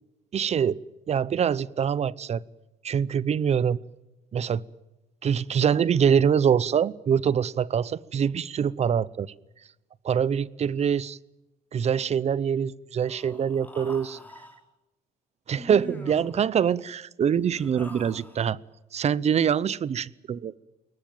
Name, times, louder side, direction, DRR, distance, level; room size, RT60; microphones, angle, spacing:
voice 1, 0.3-0.8 1.1-2.4 2.8-3.8 4.3-4.6 5.2-9.3 10.0-11.2 11.7-14.2 15.5-18.6 18.9-20.6, right 8 dB, 40° right, 22 dB, 0.8 m, -24 dB
Human voice, 13.1-14.6 15.6-16.4 17.3-18.5, equal, 10° left, 4.7 m, -44 dB
22.5 x 19.5 x 9.1 m, 0.95 s
cardioid pair, 110°, 17 cm